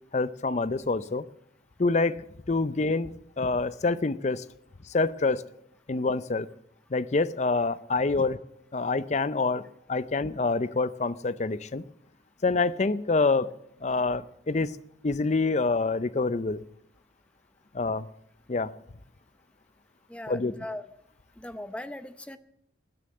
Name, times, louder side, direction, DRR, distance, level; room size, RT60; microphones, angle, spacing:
voice 1, 0.1-1.3 1.8-4.4 4.9-5.4 5.9-6.5 6.9-8.4 8.7-11.8 12.4-13.5 13.8-14.8 15.0-16.6 17.7-18.1 18.5-18.7 20.3-20.5, left 3 dB, 40° left, 15 dB, 0.5 m, -26 dB
voice 2, 20.1-20.9 21.4-22.4, left 1 dB, 5° left, 11 dB, 0.7 m, -39 dB
20.0 x 6.9 x 7.9 m, 0.73 s
head